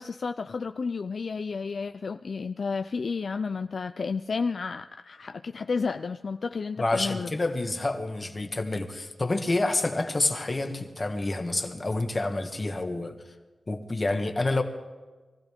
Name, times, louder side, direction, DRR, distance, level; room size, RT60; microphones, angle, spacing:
voice 1, 0.0-7.3, left 4 dB, 55° left, 9 dB, 0.4 m, -31 dB
voice 2, 6.8-13.2 13.7-14.6, left 2 dB, 30° left, 6 dB, 1.4 m, -28 dB
23.5 x 15.5 x 3.6 m, 1.3 s
wide cardioid pair, 140°, 0 cm